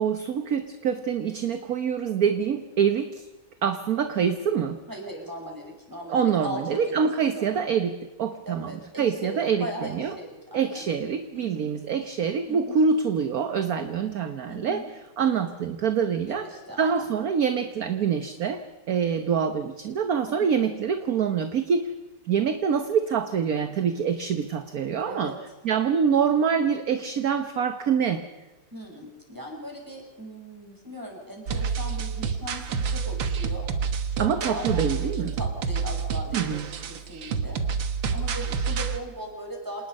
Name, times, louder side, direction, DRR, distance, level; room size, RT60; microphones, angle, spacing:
voice 1, 0.0-3.3 3.6-4.8 6.1-8.7 9.0-10.1 10.5-14.8 15.2-16.5 16.8-21.9 22.2-25.3 25.6-28.2 34.2-35.3 36.3-36.7, right 7 dB, 55° right, 9 dB, 1.4 m, -25 dB
voice 2, 4.9-7.1 7.4-7.6 8.5-10.8 11.3-11.7 12.5-12.8 14.5-14.9 15.2-15.4 16.3-17.1 20.3-20.6 25.1-25.4 28.7-37.6 38.1-39.9, equal, 10° right, 1 dB, 6.0 m, -39 dB
sound 1, 31.5-39.0, right 5 dB, 85° right, 2.1 m, -28 dB
27.0 x 19.5 x 5.4 m, 1.2 s
omnidirectional pair, 2.1 m